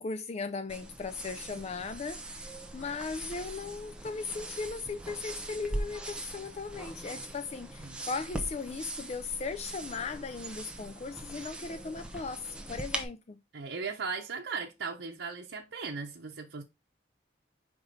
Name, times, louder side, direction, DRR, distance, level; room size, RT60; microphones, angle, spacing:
voice 1, 0.0-13.4, left 4 dB, 35° left, 0.4 m, -37 dB
sound 1, 0.7-13.0, right 1 dB, 5° right, 0.8 m, -41 dB
voice 2, 13.5-16.6, right 5 dB, 90° right, 0.8 m, -37 dB
5.3 x 4.9 x 3.9 m
head